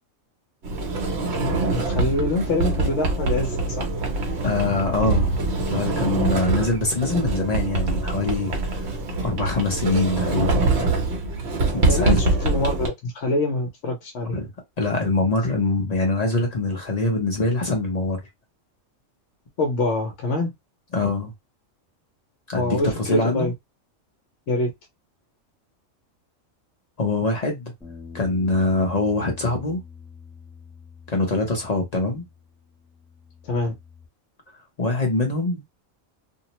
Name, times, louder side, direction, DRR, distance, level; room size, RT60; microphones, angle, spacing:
Sliding door, 0.6-12.9, right 2 dB, 60° right, 1.0 m, -24 dB
voice 1, 1.7-3.9 11.7-14.4 19.6-20.5 22.5-23.5 24.5-24.7 33.4-33.7, left 2 dB, 65° left, 1.0 m, -25 dB
voice 2, 4.4-10.6 11.7-12.2 14.3-14.5 14.8-18.2 20.9-21.3 22.5-23.5 27.0-27.7 28.1-29.8 31.1-32.3 34.8-35.6, left 2 dB, 40° left, 0.7 m, -24 dB
sound 1, 27.8-34.1, left 6 dB, ahead, 0.8 m, -45 dB
2.6 x 2.0 x 2.9 m
omnidirectional pair, 1.3 m